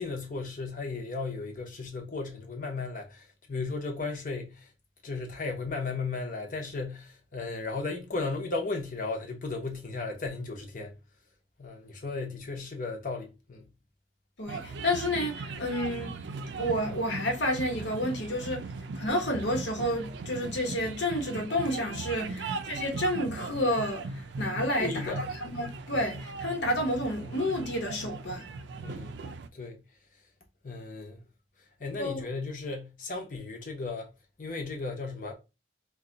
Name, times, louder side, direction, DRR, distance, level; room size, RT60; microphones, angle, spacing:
voice 1, 0.0-4.7 5.0-11.0 11.6-13.7 18.6-18.8 22.3-22.5 24.8-25.2 28.8-29.1 29.5-29.8 30.6-31.2 31.8-34.1 34.4-35.3, left 3 dB, 45° left, 0.7 m, -35 dB
voice 2, 14.4-16.2 16.5-18.6 18.9-28.5 32.0-32.2, left 1 dB, 75° left, 1.1 m, -30 dB
sound 1, 14.5-29.5, right 3 dB, 70° right, 0.4 m, -39 dB
2.6 x 2.3 x 3.8 m
head